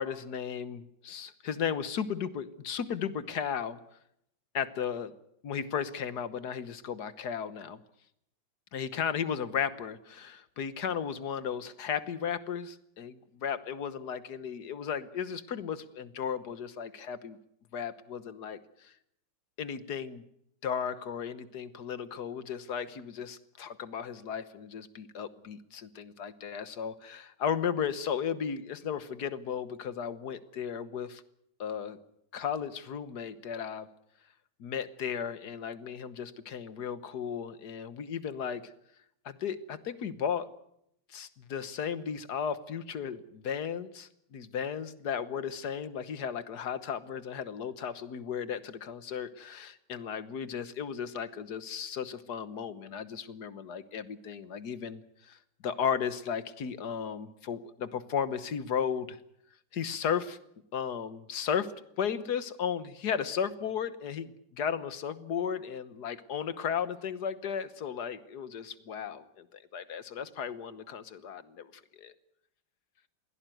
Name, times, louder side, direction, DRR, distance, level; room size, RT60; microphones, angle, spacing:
voice 1, 0.0-3.8 4.5-5.1 5.4-7.8 8.7-17.4 17.7-18.9 19.6-20.2 20.6-31.2 31.6-32.0 32.3-33.9 34.6-38.7 39.2-40.5 41.1-55.4 55.6-59.2 59.7-60.4 60.7-69.5 69.7-72.1, left 7 dB, 60° left, 13 dB, 1.7 m, -35 dB
22.0 x 16.5 x 9.2 m, 0.77 s
omnidirectional pair, 2.0 m